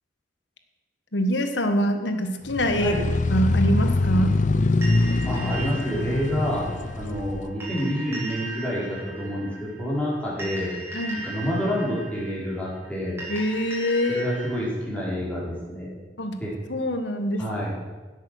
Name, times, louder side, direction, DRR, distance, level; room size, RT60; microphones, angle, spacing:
voice 1, 1.1-3.0 3.3-4.3 10.9-11.2 13.3-14.2 16.2-16.4 16.7-17.6, equal, 70° left, 6 dB, 1.5 m, -24 dB
sound 1, 2.5-7.4, left 2 dB, 40° left, 0.5 m, -24 dB
sound 2, 4.8-14.6, right 1 dB, 15° right, 3.9 m, -38 dB
voice 2, 5.3-6.7 6.9-10.7 11.2-13.2 14.1-16.0 16.4-16.5 17.4-17.8, equal, 10° left, -7 dB, 4.8 m, -28 dB
16.5 x 8.3 x 6.6 m, 1.2 s
head